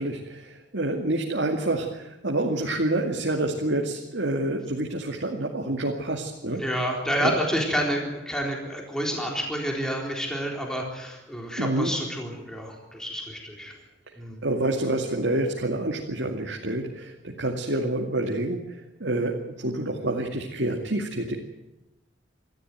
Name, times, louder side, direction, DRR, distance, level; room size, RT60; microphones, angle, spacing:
voice 1, 0.0-6.6 7.2-7.3 11.6-11.9 14.4-21.4, right 1 dB, 70° right, 0 dB, 2.4 m, -28 dB
voice 2, 6.6-13.7 14.2-14.5, equal, 5° left, -1 dB, 4.0 m, -29 dB
25.5 x 14.5 x 9.4 m, 0.96 s
head